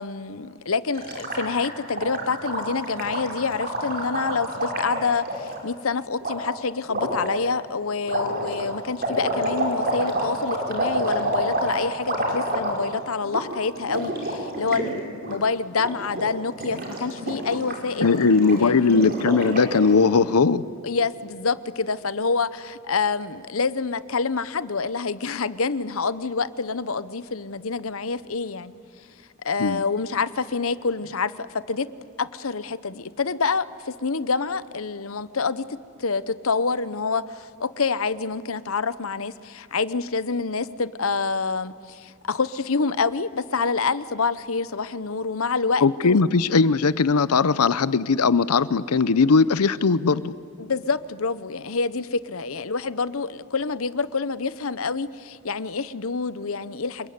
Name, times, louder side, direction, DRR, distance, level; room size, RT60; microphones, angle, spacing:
voice 1, 0.0-18.9 20.8-28.7 29.4-31.9 32.2-46.2 50.6-57.1, left 4 dB, 65° left, 16 dB, 0.9 m, -27 dB
Gurgling, 0.9-5.6 6.2-6.3 6.9-7.3 8.0-13.0 13.2-13.4 13.7-14.9 15.1-15.4 15.7-16.2 16.5-19.9, right 1 dB, 40° right, 5.2 m, -28 dB
voice 2, 18.0-20.6 29.6-29.8 45.8-50.3, left 4 dB, 90° left, 17 dB, 0.7 m, -19 dB
27.0 x 22.0 x 9.6 m, 2.3 s
head